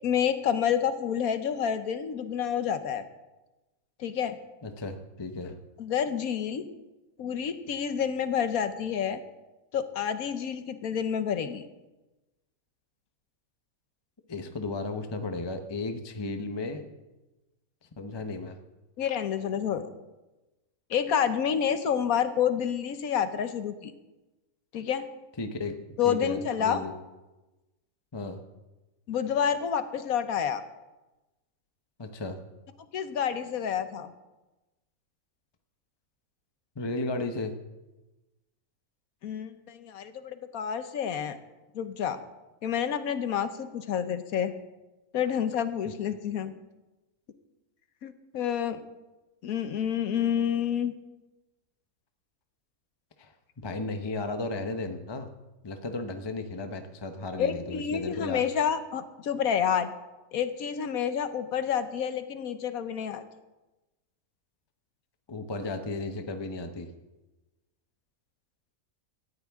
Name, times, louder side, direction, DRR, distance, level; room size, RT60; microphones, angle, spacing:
voice 1, 0.0-3.0 4.0-4.4 5.8-6.6 7.2-9.2 9.7-11.6 19.0-19.9 20.9-23.9 24.7-25.0 26.0-26.8 29.1-30.6 32.9-34.1 39.2-41.4 41.7-42.2 42.6-44.5 45.1-46.5 48.0-48.8 49.4-50.9 57.4-59.9 60.3-63.2, left 8 dB, 70° left, 10 dB, 1.3 m, -29 dB
voice 2, 4.6-5.5 14.3-16.9 18.0-18.6 25.4-25.8 26.0-26.9 28.1-28.4 32.0-32.4 36.8-37.5 45.8-45.9 53.2-53.3 53.6-55.3 55.6-58.4 65.3-66.9, left 2 dB, 20° left, 6 dB, 0.7 m, -34 dB
18.0 x 13.5 x 3.6 m, 1.1 s
omnidirectional pair, 1.6 m